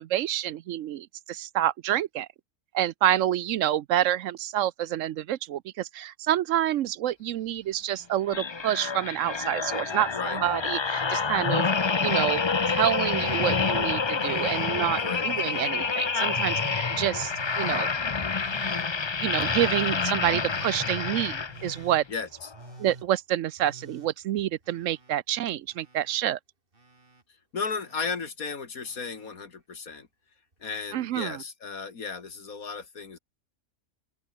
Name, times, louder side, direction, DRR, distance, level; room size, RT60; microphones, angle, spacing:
voice 1, 0.0-2.3 2.7-12.4 12.7-17.9 19.2-22.0 22.8-26.4 30.9-31.4, right 12 dB, 70° right, 0.9 m, -28 dB
sound 1, 8.3-21.9 22.4-22.6, left 5 dB, 35° left, 0.5 m, -28 dB
Telephone, 14.1-14.7 15.2-15.7 16.2-16.8 17.3-17.8 18.3-18.9 19.4-19.9 20.4-21.0 21.5-22.0 22.5-23.1 23.6-25.1 25.4-26.2 26.7-27.2 27.8-28.3 28.8-29.3 30.5-30.6, right 3 dB, 40° right, 3.1 m, -48 dB
voice 2, 22.1-22.5 27.5-30.1 30.6-33.2, left 5 dB, 85° left, 2.7 m, -35 dB
open air
omnidirectional pair, 1.5 m